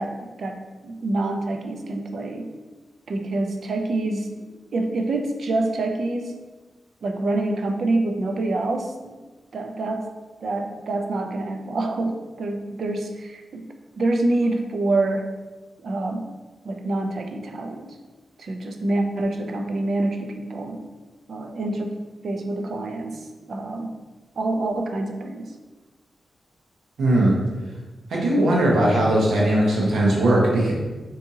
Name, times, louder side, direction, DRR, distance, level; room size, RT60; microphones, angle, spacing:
voice 1, 0.0-2.5 3.1-4.4 4.7-6.3 7.0-9.2 9.5-10.1 10.4-13.7 14.0-15.3 15.8-16.3 16.6-18.0 18.4-20.8 21.3-24.0 24.4-25.5, right 2 dB, 60° right, 4 dB, 0.3 m, -26 dB
voice 2, 27.0-27.3 28.1-30.7, right 1 dB, 85° right, -3 dB, 0.8 m, -19 dB
3.5 x 2.6 x 2.8 m, 1.2 s
wide cardioid pair, 130°, 0 cm